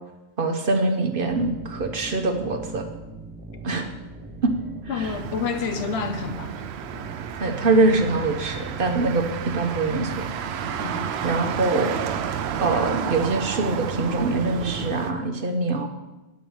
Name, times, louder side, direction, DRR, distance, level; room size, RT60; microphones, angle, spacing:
voice 1, 0.4-2.8 3.6-3.9 4.4-4.5 5.0-5.1 7.4-10.3 11.2-11.9 12.6-15.9, right 3 dB, 55° right, 1.1 m, -23 dB
sound 1, 1.3-14.8, right 2 dB, 15° right, 0.3 m, -41 dB
voice 2, 4.9-6.6 10.8-11.1, left 6 dB, 65° left, 0.9 m, -29 dB
Motor vehicle (road), 5.0-15.1, right 8 dB, 70° right, 0.8 m, -31 dB
8.9 x 5.1 x 7.1 m
omnidirectional pair, 1.2 m